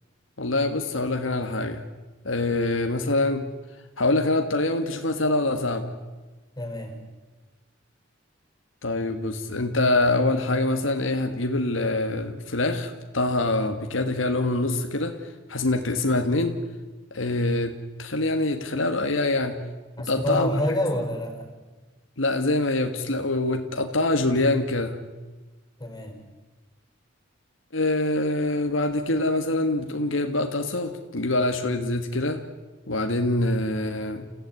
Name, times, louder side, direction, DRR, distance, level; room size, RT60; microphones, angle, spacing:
voice 1, 0.4-1.8 2.2-3.5 4.0-5.9 8.8-16.6 17.1-19.6 20.1-20.5 22.2-25.0 27.7-32.4 32.9-34.3, left 2 dB, 75° left, 6 dB, 1.7 m, -25 dB
voice 2, 6.6-7.0 20.0-21.5 25.8-26.2, left 1 dB, 20° left, 5 dB, 5.5 m, -27 dB
29.0 x 16.0 x 9.5 m, 1.3 s
head